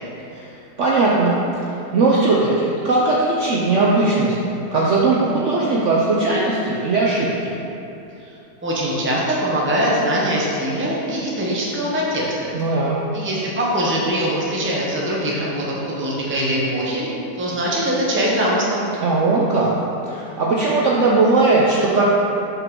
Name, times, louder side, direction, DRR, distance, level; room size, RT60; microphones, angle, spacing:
voice 1, 0.8-4.3 4.7-7.5 12.5-13.0 19.0-19.7 20.1-22.1, right 3 dB, 60° right, -4 dB, 0.8 m, -18 dB
voice 2, 8.6-12.5 13.1-17.1 17.4-18.8, equal, 10° right, -5 dB, 0.7 m, -22 dB
7.7 x 5.0 x 3.7 m, 2.9 s
omnidirectional pair, 1.8 m